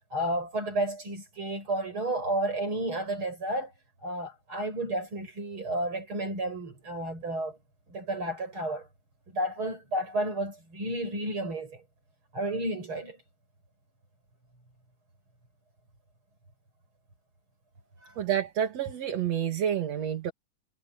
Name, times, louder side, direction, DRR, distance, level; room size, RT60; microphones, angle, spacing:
voice 1, 0.1-3.7 4.0-7.6 7.9-8.9 9.3-11.8 12.3-13.2 18.0-18.1, right 1 dB, 40° right, 8.6 m, -32 dB
voice 2, 18.2-20.3, right 9 dB, 55° right, 3.3 m, -29 dB
omnidirectional pair, 3.6 m